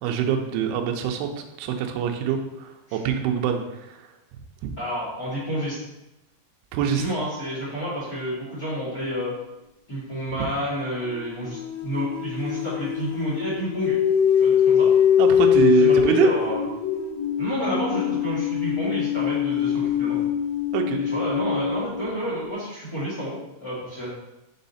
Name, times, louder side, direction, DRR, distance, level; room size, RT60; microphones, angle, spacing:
voice 1, 0.0-1.3 1.6-4.0 4.6-4.7 6.7-7.0 15.2-16.3 20.7-21.0, right 9 dB, 80° right, 4 dB, 2.5 m, -24 dB
voice 2, 4.8-5.8 6.9-9.3 9.9-14.0 14.4-14.9 15.5-16.6 17.4-20.2 21.1-24.1, equal, 30° left, -8 dB, 1.8 m, -30 dB
sound 1, 9.0-9.2 11.0-22.1, left 8 dB, 75° left, 2.3 m, -23 dB
6.2 x 4.0 x 4.1 m, 0.95 s
omnidirectional pair, 4.8 m